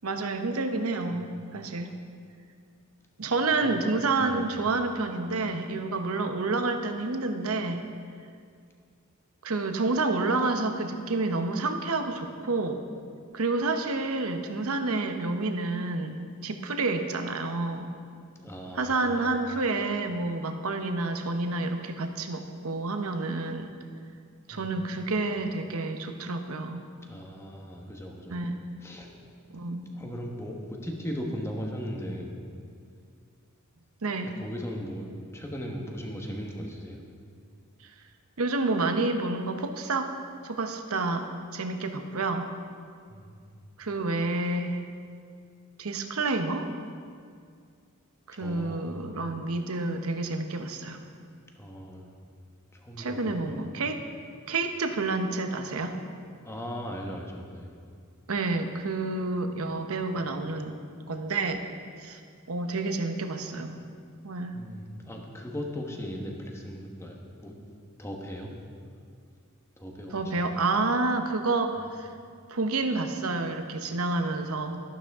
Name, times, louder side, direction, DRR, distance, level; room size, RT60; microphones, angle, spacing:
voice 1, 0.0-1.9 3.2-7.8 9.4-12.8 13.3-17.9 18.7-23.7 24.5-26.8 28.3-28.6 29.5-29.9 34.0-34.3 37.8-37.9 38.4-40.1 40.4-42.5 43.8-44.8 45.8-46.7 48.3-51.0 53.0-54.0 54.5-56.0 58.3-60.8 61.1-61.6 62.0-62.2 62.5-63.8 64.2-64.6 70.1-72.1 72.5-74.8, right 3 dB, 75° right, 7 dB, 0.9 m, -29 dB
voice 2, 4.2-4.5 18.3-19.6 24.5-24.8 27.1-28.5 28.8-29.1 29.9-32.3 34.2-37.0 43.1-43.6 48.3-49.2 51.6-52.1 52.7-53.6 56.4-57.7 64.5-67.6 68.0-68.5 69.8-70.5, equal, 15° left, 0 dB, 1.3 m, -38 dB
12.5 x 11.5 x 3.6 m, 2.2 s
head